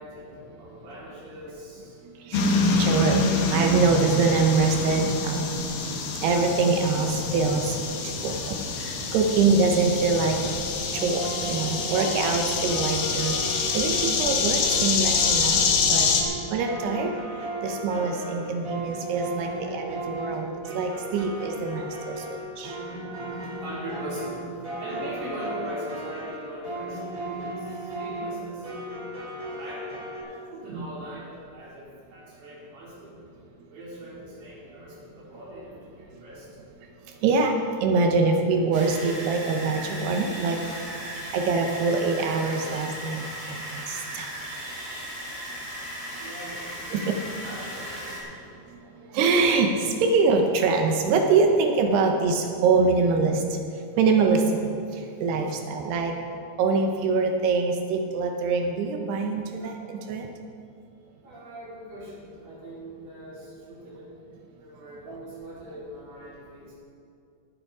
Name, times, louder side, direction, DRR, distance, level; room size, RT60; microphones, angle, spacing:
voice 1, 0.0-2.0 7.1-8.5 12.4-12.5 12.8-13.8 18.1-18.8 19.5-28.7 29.5-29.9 30.3-33.1 33.7-36.6 46.1-48.2 55.1-55.5 61.2-64.1 64.6-66.8, equal, 60° right, -8 dB, 5.7 m, -42 dB
sound 1, 2.3-16.2, left 4 dB, 70° left, 2.1 m, -26 dB
voice 2, 2.8-3.2 3.5-5.4 6.2-7.8 8.2-8.6 9.1-10.6 11.0-13.4 13.7-16.1 16.5-17.1 17.6-20.5 20.7-22.2 22.6-22.7 30.7-30.9 37.2-37.5 37.8-40.6 41.3-43.2 43.9-44.3 46.9-47.0 49.1-53.4 54.0-54.7 55.2-56.1 56.6-59.7 60.1-60.3, right 4 dB, 75° right, 3 dB, 2.7 m, -24 dB
sound 2, 10.9-30.2, right 1 dB, 40° right, 4.0 m, -36 dB
sound 3, 38.7-48.2, equal, 20° right, 3.0 m, -37 dB
18.5 x 7.8 x 4.8 m, 2.5 s
omnidirectional pair, 5.2 m